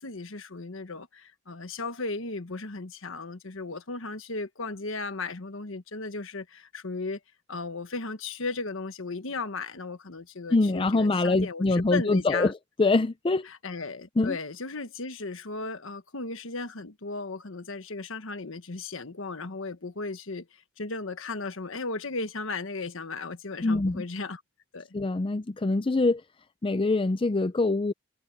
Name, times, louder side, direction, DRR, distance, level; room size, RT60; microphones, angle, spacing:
voice 1, 0.0-7.2 7.5-12.5 13.5-24.4 24.7-24.9, left 3 dB, 70° left, 1.3 m, -36 dB
voice 2, 10.5-12.5 12.8-13.5 14.2-14.4 23.6-24.0 24.9-26.2 26.6-27.9, left 3 dB, 25° left, 0.4 m, -24 dB
head